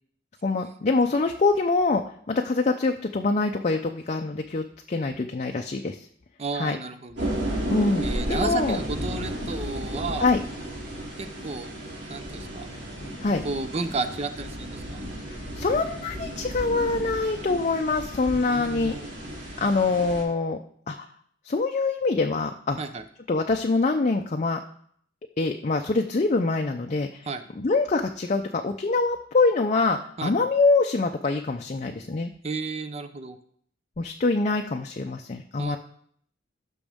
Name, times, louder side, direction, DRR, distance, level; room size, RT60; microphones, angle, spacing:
voice 1, 0.4-2.0 2.3-6.0 6.6-6.8 7.7-8.8 10.2-10.4 13.2-13.4 15.5-19.0 19.6-20.6 20.9-21.0 21.5-22.8 23.3-24.6 25.4-27.3 27.6-32.3 34.0-35.8, left 3 dB, 40° left, 3 dB, 0.5 m, -24 dB
voice 2, 6.4-7.3 8.0-10.3 11.2-11.7 12.1-12.7 13.4-15.0 18.5-19.1 22.8-23.0 27.3-27.4 30.2-30.5 32.4-33.4 35.6-35.8, right 3 dB, 35° right, 9 dB, 0.6 m, -32 dB
sound 1, 7.2-20.2, equal, 75° right, 3.2 m, -33 dB
15.0 x 6.2 x 3.5 m, 0.64 s
head